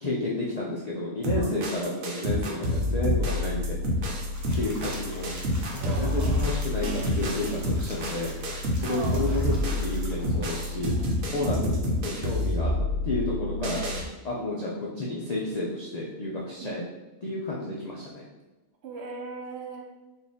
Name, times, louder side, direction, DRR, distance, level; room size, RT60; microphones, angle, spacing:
voice 1, 0.0-3.8 4.5-5.3 5.7-8.3 8.8-10.9 11.3-12.7 13.0-13.8 14.2-16.8 17.2-18.2, left 2 dB, 55° left, -4 dB, 0.4 m, -31 dB
sound 1, 1.2-14.0, left 1 dB, 85° right, 1.2 m, -28 dB
sound 2, 4.3-11.3, right 1 dB, 25° right, 0.4 m, -46 dB
voice 2, 5.8-6.5 8.8-9.4 11.4-11.7 13.5-14.1 16.6-16.8 18.8-19.8, right 4 dB, 60° right, 0 dB, 0.8 m, -38 dB
4.3 x 2.6 x 3.5 m, 1.1 s
omnidirectional pair, 1.4 m